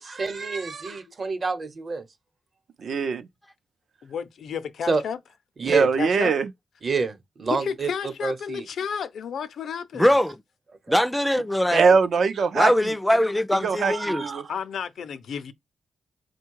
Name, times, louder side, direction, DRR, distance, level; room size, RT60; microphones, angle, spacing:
voice 1, 0.0-2.0 4.9-5.0 5.6-5.9 6.8-7.9 8.2-8.6 10.9-11.0 13.8-14.4, right 4 dB, 50° right, 0.9 m, -28 dB
voice 2, 2.8-3.3 5.6-6.5 11.7-12.9 13.6-14.4, right 5 dB, 75° right, 0.6 m, -22 dB
voice 3, 4.0-5.2 5.7-6.3 7.6-10.1 14.5-15.5, left 7 dB, 85° left, 0.5 m, -32 dB
voice 4, 9.9-10.3 10.9-11.8 12.5-14.2, left 1 dB, 5° left, 0.4 m, -21 dB
4.5 x 2.2 x 4.6 m
wide cardioid pair, 105°, 0 cm